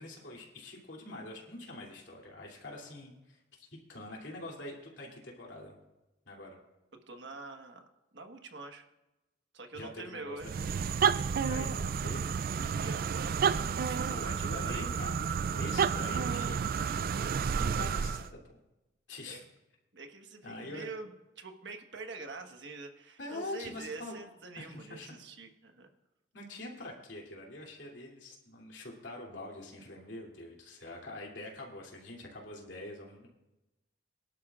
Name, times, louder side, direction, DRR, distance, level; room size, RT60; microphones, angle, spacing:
voice 1, 0.0-5.7 6.3-6.6 9.7-10.5 11.3-12.4 14.1-15.2 15.5-17.3 17.6-18.4 19.1-19.5 20.4-20.9 23.2-24.2 24.6-25.1 26.3-33.3, left 2 dB, 70° left, -1 dB, 2.9 m, -45 dB
voice 2, 7.1-8.9 9.5-10.5 12.8-13.3 13.8-14.8 19.2-19.4 19.9-25.9, right 3 dB, 65° right, 5 dB, 1.4 m, -45 dB
sound 1, 10.4-18.3, right 6 dB, 50° right, 0.4 m, -31 dB
23.0 x 11.5 x 2.5 m, 0.99 s
head